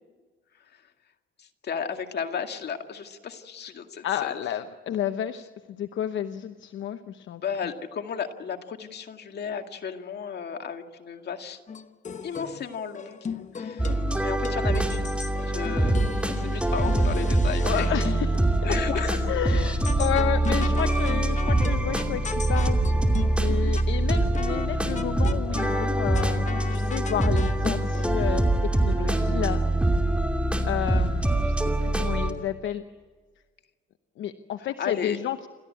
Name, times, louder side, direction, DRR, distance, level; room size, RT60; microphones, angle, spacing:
voice 1, 1.4-4.3 7.4-11.6 12.2-13.2 13.5-13.9 14.2-16.0 16.3-17.9 18.6-19.3 34.8-35.2, left 7 dB, 55° left, 5 dB, 2.1 m, -34 dB
voice 2, 4.0-7.4 17.6-18.8 19.2-23.0 23.4-28.4 28.8-29.6 30.6-32.8 34.2-35.5, left 11 dB, 75° left, 10 dB, 0.9 m, -31 dB
sound 1, 11.7-19.1 19.8-23.9 24.3-24.7 24.9-28.2, left 6 dB, 35° left, 1.2 m, -37 dB
sound 2, 13.8-32.3, right 1 dB, 5° right, 2.7 m, -24 dB
28.5 x 13.5 x 8.5 m, 1.5 s
cardioid pair, 90°, 20 cm